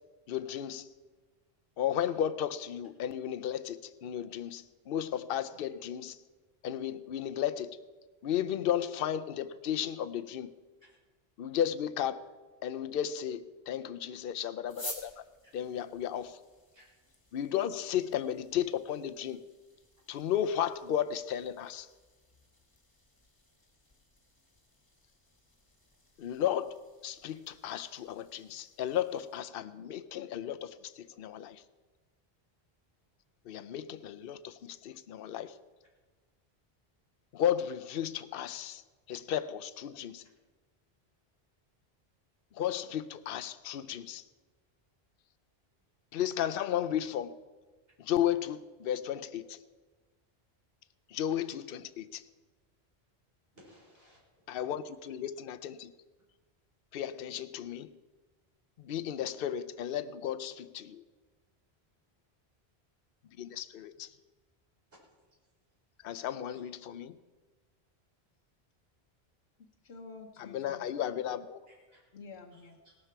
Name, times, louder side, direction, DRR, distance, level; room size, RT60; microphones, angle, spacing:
voice 1, 0.3-0.9 1.8-6.2 6.6-7.8 8.2-10.5 11.4-12.2 12.6-15.2 15.5-16.4 17.3-19.4 20.1-21.9 26.2-31.6 33.5-35.6 37.3-38.8 39.1-40.2 42.5-44.2 46.1-47.3 48.0-49.6 51.1-52.2 54.5-55.9 56.9-57.9 58.8-61.0 63.4-64.1 66.0-67.2 70.4-71.6, left 10 dB, 65° left, 12 dB, 0.8 m, -34 dB
sound 1, 14.6-29.4, left 1 dB, 20° left, 2.0 m, -52 dB
voice 2, 53.5-54.2 66.5-66.6 71.7-72.0 72.5-73.0, equal, 65° right, -5 dB, 5.5 m, -60 dB
voice 3, 69.6-71.0 72.1-72.8, left 4 dB, 85° left, 2 dB, 1.2 m, -50 dB
17.5 x 12.5 x 4.6 m, 1.3 s
omnidirectional pair, 1.1 m